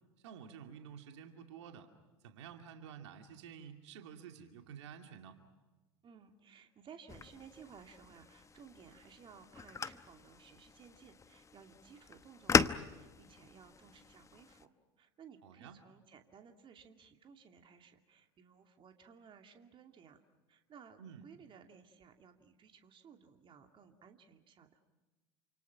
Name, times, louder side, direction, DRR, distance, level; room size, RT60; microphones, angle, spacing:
voice 1, 0.2-1.9 2.2-5.4 15.4-15.8 21.0-21.2, right 8 dB, 75° right, 5 dB, 2.5 m, -51 dB
voice 2, 6.0-14.7 15.0-20.2 20.5-24.8, right 6 dB, 35° right, 5 dB, 2.6 m, -58 dB
sound 1, 7.1-14.7, left 5 dB, 20° left, 1.0 m, -38 dB
29.0 x 27.0 x 5.9 m, 1.2 s
hypercardioid pair, 90°, 15 cm